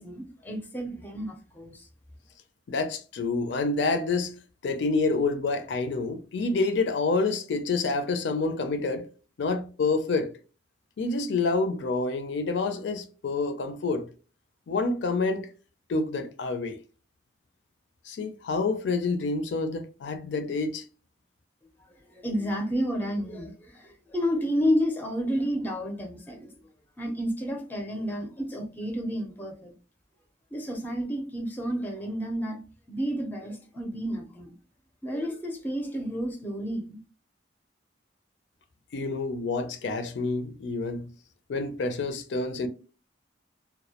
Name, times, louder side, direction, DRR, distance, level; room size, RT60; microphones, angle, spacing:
voice 1, 0.0-1.9 22.1-26.5 27.0-29.7 30.5-32.6 32.9-34.5 35.0-37.0, equal, 10° left, 0.4 m, -31 dB
voice 2, 2.7-9.1 9.4-10.3 11.0-14.1 14.7-15.5 15.9-16.8 18.1-20.8 38.9-41.1 41.5-42.7, left 3 dB, 70° left, 0.4 m, -28 dB
2.2 x 2.0 x 2.8 m
head